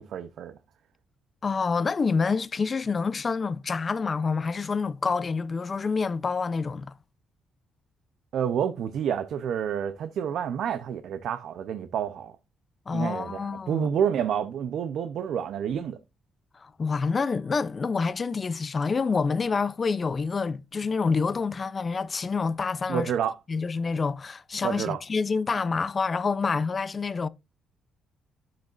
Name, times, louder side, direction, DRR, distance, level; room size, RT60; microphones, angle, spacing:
voice 1, 0.1-0.5 8.3-12.4 12.9-16.0 22.9-23.4 24.6-25.0, right 8 dB, 70° right, 0.7 m, -29 dB
voice 2, 1.4-6.9 12.9-13.9 16.5-23.1 23.5-27.3, left 4 dB, 35° left, 0.5 m, -27 dB
9.5 x 7.5 x 2.5 m
cardioid pair, 90°, 0 cm